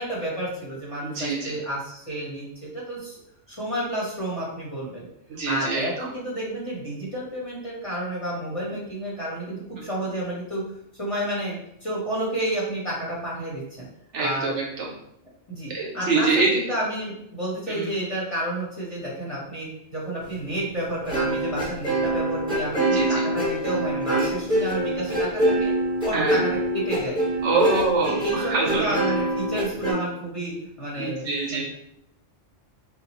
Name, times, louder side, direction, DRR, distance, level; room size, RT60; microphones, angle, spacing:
voice 1, 0.0-2.5 2.7-3.1 3.5-5.0 5.4-10.6 11.0-11.5 11.8-13.9 14.2-14.5 15.5-25.7 26.0-27.2 27.6-27.8 28.0-31.7, right 1 dB, 30° left, -7 dB, 1.2 m, -30 dB
voice 2, 1.0-1.5 5.4-6.1 14.1-14.9 15.7-16.6 17.7-17.9 22.9-23.2 26.1-26.4 27.4-29.0 31.0-31.7, right 3 dB, 70° right, -2 dB, 1.2 m, -25 dB
sound 1, 21.0-29.9, right 1 dB, 5° right, 1.4 m, -24 dB
4.1 x 2.5 x 2.9 m, 0.77 s
omnidirectional pair, 1.2 m